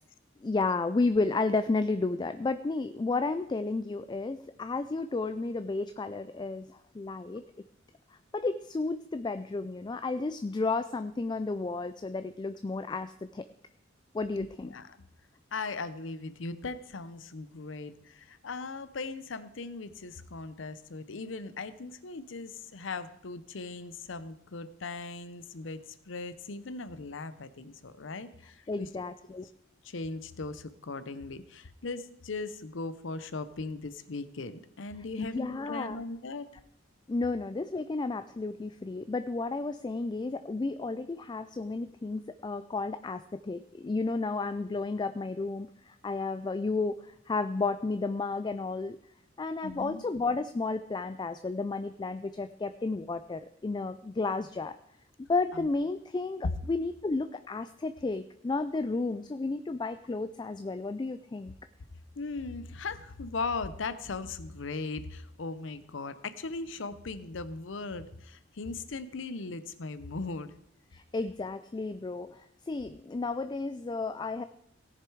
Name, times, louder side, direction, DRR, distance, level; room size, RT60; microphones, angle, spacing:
voice 1, 0.4-7.4 8.3-13.4 14.1-14.7 28.7-29.5 35.2-36.0 37.1-49.0 49.4-54.8 55.2-61.5 70.9-74.4, left 3 dB, 25° left, 11 dB, 0.3 m, -32 dB
voice 2, 14.3-14.9 15.5-28.9 29.8-36.5 49.6-50.0 55.5-55.7 62.2-70.5, left 3 dB, 75° left, 13 dB, 0.7 m, -38 dB
17.5 x 6.8 x 4.7 m, 0.75 s
head